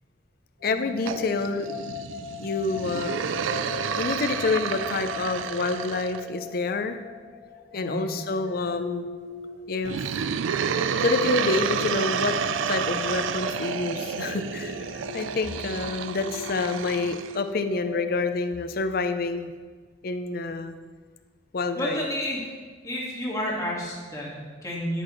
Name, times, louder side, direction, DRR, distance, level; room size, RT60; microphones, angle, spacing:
voice 1, 0.6-1.7 2.4-3.1 3.9-7.0 7.7-9.2 9.7-10.1 11.0-12.3 12.7-19.5 20.0-20.8 21.5-22.0, left 3 dB, 50° left, 8 dB, 0.5 m, -28 dB
sound 1, 0.6-18.1, left 4 dB, 70° right, 2.5 m, -40 dB
sound 2, 1.1-6.2 9.8-17.4, right 7 dB, 90° right, 0.4 m, -30 dB
voice 2, 7.7-8.1 21.8-22.5 22.8-25.0, equal, 20° left, -4 dB, 1.8 m, -30 dB
10.0 x 8.5 x 3.1 m, 1.4 s
head